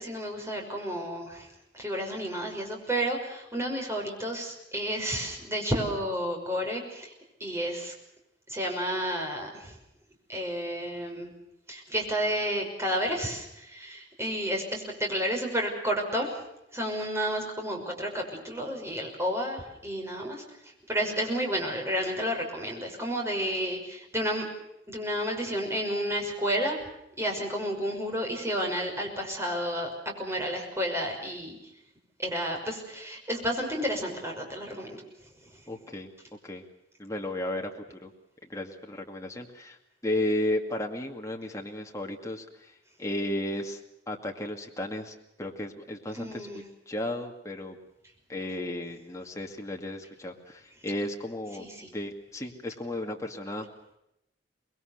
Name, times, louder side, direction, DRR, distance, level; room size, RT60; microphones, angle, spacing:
voice 1, 0.0-1.5 1.7-7.1 7.4-7.9 8.5-9.8 10.3-11.3 11.7-16.4 16.7-24.4 24.9-26.8 27.2-31.6 32.2-35.0 35.5-35.6 46.1-46.6 51.6-51.9, equal, 15° right, 1 dB, 5.9 m, -31 dB
voice 2, 35.7-36.1 36.4-36.6 37.0-38.1 38.5-39.8 40.0-42.7 43.0-43.8 44.1-46.5 46.9-47.8 48.3-53.7, left 1 dB, 15° left, 2 dB, 2.2 m, -34 dB
25.5 x 21.0 x 6.6 m, 0.83 s
head